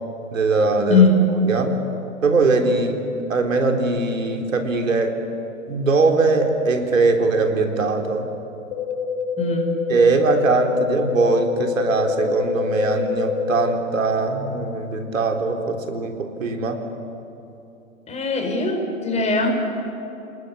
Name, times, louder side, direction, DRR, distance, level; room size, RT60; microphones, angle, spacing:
voice 1, 0.3-1.0 1.5-1.7 2.2-3.0 3.3-5.2 5.7-8.3 9.9-16.8, right 3 dB, 70° right, 4 dB, 3.9 m, -21 dB
voice 2, 0.9-1.3 9.4-9.7 18.1-19.5, left 3 dB, 15° left, 4 dB, 4.7 m, -19 dB
sound 1, 8.7-13.7, left 6 dB, 50° left, 2.1 m, -26 dB
29.0 x 19.5 x 10.0 m, 2.9 s
figure-of-eight pair, 115°, 40 cm